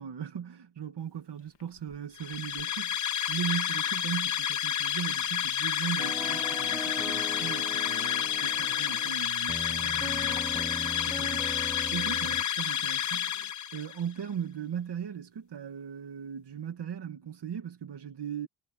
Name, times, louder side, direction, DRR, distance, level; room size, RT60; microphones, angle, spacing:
voice 1, 0.0-18.5, right 8 dB, 70° right, 2.3 m, -38 dB
Sink (filling or washing), 1.0-4.1 4.9-5.0 5.2-13.5, left 9 dB, 85° left, 1.8 m, -53 dB
sound 1, 2.2-14.0, left 10 dB, 45° left, 0.5 m, -30 dB
sound 2, 6.0-12.4, equal, ahead, 0.8 m, -40 dB
wide cardioid pair, 115°, 43 cm